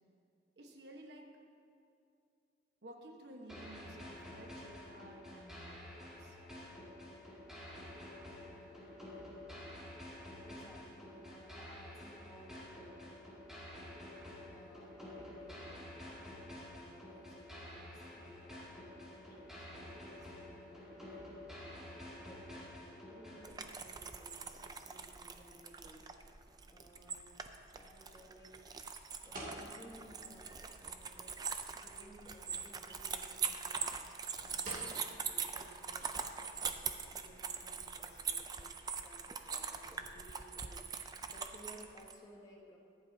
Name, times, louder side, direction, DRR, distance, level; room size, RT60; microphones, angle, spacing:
voice 1, 0.6-1.3 2.8-6.4, right 1 dB, 65° right, 1 dB, 1.3 m, -54 dB
sound 1, 3.5-23.5, left 1 dB, 5° right, 2.3 m, -50 dB
voice 2, 10.0-13.3 14.5-26.4 26.7-27.3 27.7-28.9 29.2-31.4 31.7-42.8, right 1 dB, 20° left, -2 dB, 1.3 m, -59 dB
sound 2, 23.4-42.1, right 6 dB, 20° right, 0.4 m, -42 dB
sound 3, 25.2-38.5, right 1 dB, 45° right, 2.7 m, -56 dB
23.0 x 7.9 x 2.8 m, 2.6 s
head